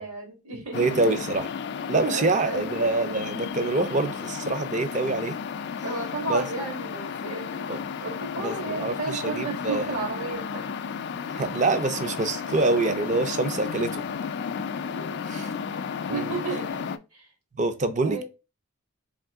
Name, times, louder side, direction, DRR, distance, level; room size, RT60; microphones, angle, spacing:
voice 1, 0.0-0.9 2.1-2.8 5.8-7.7 8.0-10.8 14.9-15.3 16.1-17.3 18.0-18.2, right 3 dB, 70° right, 1.7 m, -34 dB
voice 2, 0.5-1.5 1.9-5.4 6.3-6.4 7.7-7.8 8.4-9.9 11.3-14.0 15.3-15.5 16.1-16.3 17.6-18.2, right 3 dB, 35° right, 0.5 m, -26 dB
sound 1, 0.7-17.0, left 6 dB, 50° left, 0.3 m, -33 dB
3.6 x 3.1 x 3.5 m
head